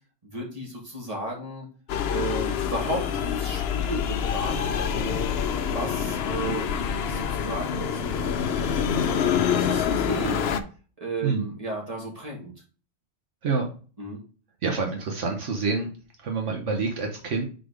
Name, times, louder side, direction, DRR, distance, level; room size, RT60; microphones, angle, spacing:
voice 1, 0.2-1.7 2.1-5.2 5.7-9.1 9.5-10.5 11.0-12.5 14.0-14.2, right 1 dB, 30° right, -2 dB, 2.0 m, -34 dB
sound 1, 1.9-10.6, left 7 dB, 60° left, 0.8 m, -26 dB
voice 2, 14.6-15.9 16.2-17.5, right 4 dB, 75° right, 2 dB, 1.3 m, -27 dB
5.1 x 4.1 x 4.8 m, 0.38 s
omnidirectional pair, 1.3 m